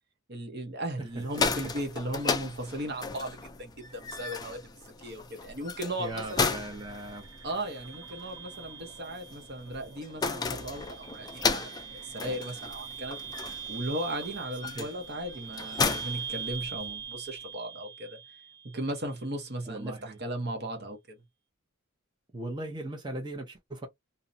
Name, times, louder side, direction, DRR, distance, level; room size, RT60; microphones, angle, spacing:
voice 1, 0.3-6.4 7.4-13.2 13.7-18.2 18.6-21.2, right 1 dB, 50° right, 0.8 m, -36 dB
voice 2, 1.0-1.7 6.0-7.2 14.6-14.9 19.7-20.2 22.3-23.9, right 2 dB, 20° right, 0.7 m, -39 dB
sound 1, 1.1-17.1, left 4 dB, 20° left, 0.3 m, -35 dB
sound 2, 6.1-19.1, right 7 dB, 85° right, 0.9 m, -43 dB
2.5 x 2.1 x 2.6 m
head